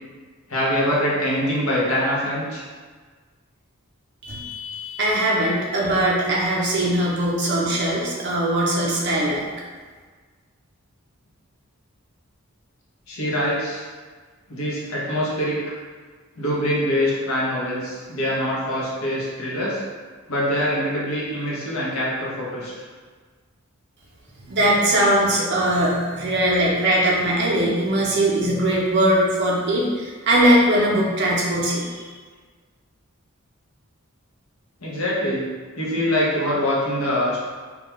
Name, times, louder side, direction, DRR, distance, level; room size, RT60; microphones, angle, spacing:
voice 1, 0.5-2.6 13.1-13.9 14.5-15.6 16.4-19.8 20.3-22.8 34.8-35.5 35.8-37.4, equal, 75° left, -6 dB, 0.7 m, -24 dB
voice 2, 4.2-9.4 24.5-32.1, right 1 dB, 50° right, -4 dB, 0.5 m, -20 dB
2.3 x 2.2 x 2.9 m, 1.5 s
head